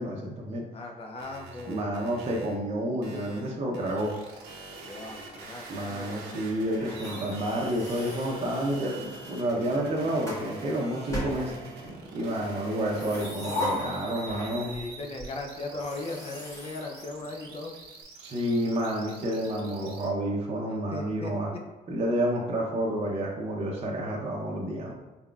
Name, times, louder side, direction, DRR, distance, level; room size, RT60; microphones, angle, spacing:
voice 1, 0.0-0.6 1.7-4.1 5.7-11.5 12.1-14.7 18.2-21.5 21.9-24.9, right 1 dB, 40° right, -2 dB, 0.6 m, -30 dB
voice 2, 0.7-2.0 4.8-6.4 12.3-13.1 14.6-17.7 20.9-21.3, left 2 dB, 35° left, 1 dB, 0.5 m, -38 dB
sound 1, 1.2-2.5 3.0-20.1, right 3 dB, 85° right, 0.8 m, -45 dB
sound 2, 6.8-9.1 9.8-10.5 11.1-12.0 12.7-14.9 15.2-15.3 15.7-17.8, left 1 dB, 15° left, 1.3 m, -37 dB
4.2 x 3.7 x 2.3 m, 1.1 s
cardioid pair, 110°, 17 cm